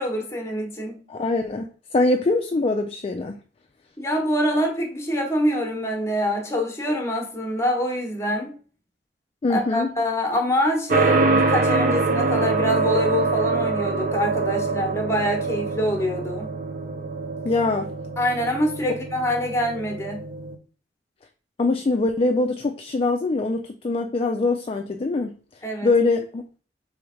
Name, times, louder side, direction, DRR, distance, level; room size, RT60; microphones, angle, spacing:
voice 1, 0.0-1.0 4.0-8.5 9.5-16.5 18.2-20.2 25.6-25.9, equal, 15° left, 1.0 m, -25 dB
voice 2, 1.1-3.4 9.4-9.9 17.4-17.9 21.6-25.4 25.8-26.4, left 3 dB, 30° left, 0.3 m, -23 dB
sound 1, 10.9-20.5, right 3 dB, 50° right, 0.6 m, -24 dB
3.4 x 3.2 x 4.8 m
head